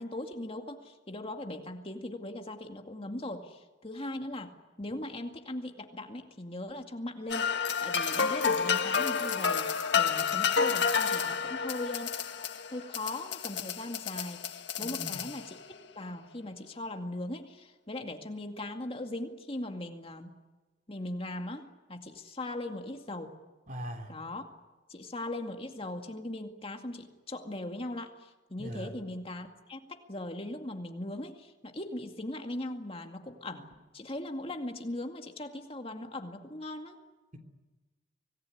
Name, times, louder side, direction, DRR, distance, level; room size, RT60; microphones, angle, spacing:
voice 1, 0.0-12.1 12.7-20.3 20.9-23.3 24.1-24.5 24.9-37.0, left 1 dB, 30° left, 4 dB, 2.2 m, -39 dB
sound 1, 7.3-15.7, left 6 dB, 70° left, 1.6 m, -30 dB
voice 2, 14.8-15.2 23.7-24.1 28.6-28.9, equal, 45° right, 4 dB, 3.4 m, -40 dB
25.0 x 19.0 x 9.9 m, 1.2 s
head